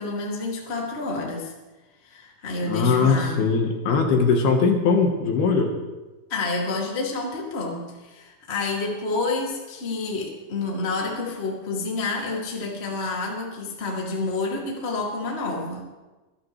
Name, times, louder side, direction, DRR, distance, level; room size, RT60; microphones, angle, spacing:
voice 1, 0.0-1.5 2.0-3.4 6.3-15.8, left 3 dB, 25° left, -2 dB, 1.3 m, -29 dB
voice 2, 2.6-5.7, left 5 dB, 65° left, 2 dB, 2.9 m, -20 dB
26.5 x 11.5 x 3.2 m, 1.2 s
omnidirectional pair, 5.2 m